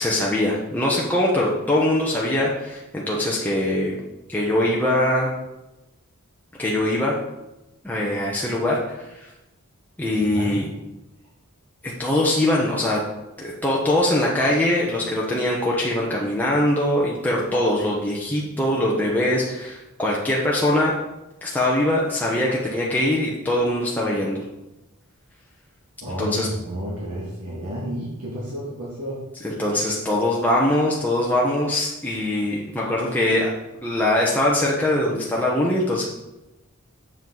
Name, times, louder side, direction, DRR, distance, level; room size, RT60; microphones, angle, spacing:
voice 1, 0.0-4.0 4.3-5.3 6.6-7.1 7.8-9.2 10.0-10.7 11.8-13.0 13.4-20.9 21.4-24.4 26.2-26.5 29.4-33.5 33.8-36.1, left 1 dB, 10° left, -5 dB, 0.9 m, -22 dB
voice 2, 10.1-10.6 26.0-29.2, equal, 90° right, -7 dB, 2.4 m, -31 dB
7.4 x 7.1 x 4.0 m, 0.98 s
head